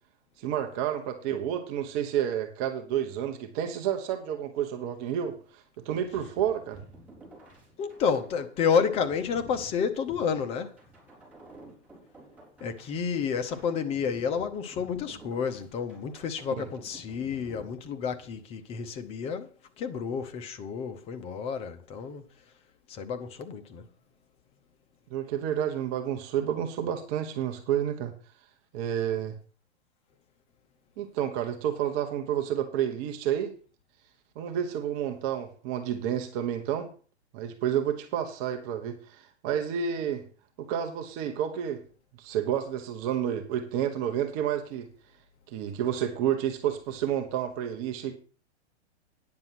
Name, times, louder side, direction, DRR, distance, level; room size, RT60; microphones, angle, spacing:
voice 1, 0.4-6.8 16.6-16.7 25.1-28.1 28.7-29.3 31.0-33.5 34.3-36.9 37.3-40.2 40.6-41.8 42.2-44.9 45.5-48.1, right 9 dB, 30° right, 1.3 m, -30 dB
sound 1, 5.9-18.4, right 2 dB, 5° right, 4.4 m, -51 dB
voice 2, 7.8-10.8 12.6-22.2 22.9-23.8, left 6 dB, 15° left, 0.7 m, -30 dB
9.7 x 7.0 x 5.9 m
hypercardioid pair, 150°, 34 cm